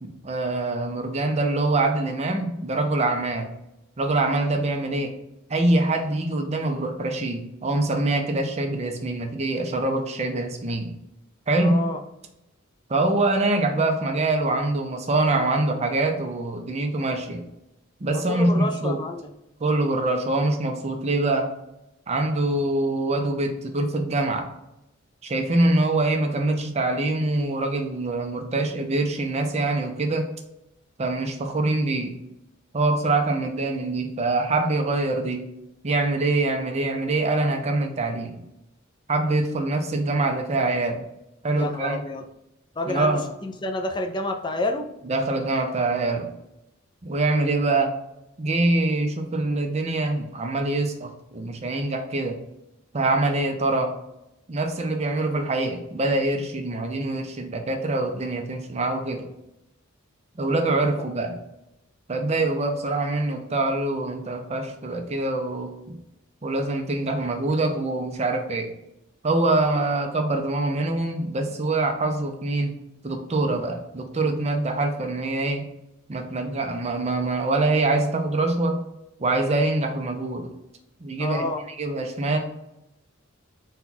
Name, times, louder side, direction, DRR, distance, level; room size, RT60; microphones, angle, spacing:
voice 1, 0.0-3.5 4.0-5.1 5.5-10.9 11.5-11.9 12.9-17.4 18.0-19.0 19.6-21.5 22.1-24.5 25.2-30.3 31.0-32.2 32.7-35.5 35.8-38.4 39.1-41.0 41.4-42.0 42.9-43.3 45.0-46.3 47.0-47.9 48.4-52.4 52.9-53.9 54.5-59.3 60.4-61.4 62.1-66.0 66.4-68.7 69.2-72.8 73.0-75.7 76.1-78.8 79.2-80.5 81.0-82.4, right 2 dB, 30° right, 4 dB, 0.6 m, -24 dB
voice 2, 11.6-12.0 18.3-19.3 41.6-42.2 42.8-44.9 81.2-81.6, left 2 dB, 20° left, 4 dB, 0.4 m, -29 dB
4.2 x 2.3 x 3.9 m, 0.87 s
head